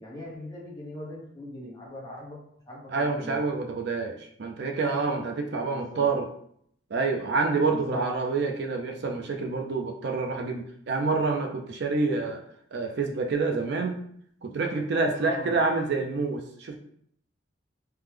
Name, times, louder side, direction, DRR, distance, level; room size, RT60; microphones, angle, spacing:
voice 1, 0.0-2.4 2.7-3.4 5.5-6.1 7.7-8.1 15.1-15.6, equal, 20° left, -5 dB, 0.9 m, -40 dB
voice 2, 2.9-6.3 6.9-12.4 12.7-14.0 14.4-16.8, right 4 dB, 60° right, 4 dB, 0.4 m, -27 dB
3.3 x 2.1 x 3.2 m, 0.66 s
head